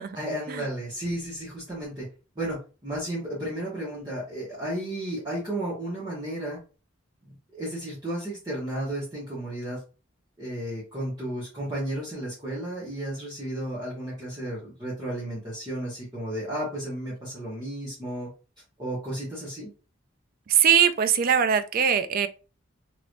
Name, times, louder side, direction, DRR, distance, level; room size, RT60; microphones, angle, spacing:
voice 1, 0.1-2.1 2.3-6.6 7.5-9.8 10.4-18.3 18.8-19.7, right 1 dB, 20° right, 1.2 m, -33 dB
voice 2, 20.5-22.3, right 8 dB, 45° right, 0.3 m, -21 dB
3.1 x 3.0 x 2.5 m
head